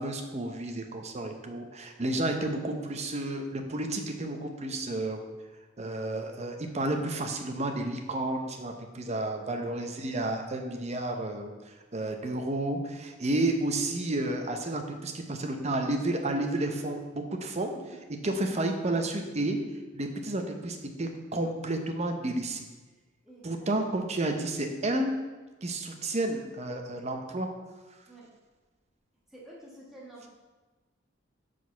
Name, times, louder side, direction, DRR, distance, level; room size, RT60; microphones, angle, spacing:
voice 1, 0.0-5.3 5.8-17.7 18.2-19.6 19.9-22.7 23.4-25.1 25.6-27.5, right 2 dB, 35° right, 4 dB, 0.7 m, -31 dB
voice 2, 23.2-23.7 28.1-28.3 29.3-30.3, right 1 dB, ahead, -6 dB, 1.4 m, -49 dB
6.2 x 5.0 x 5.6 m, 1.2 s
head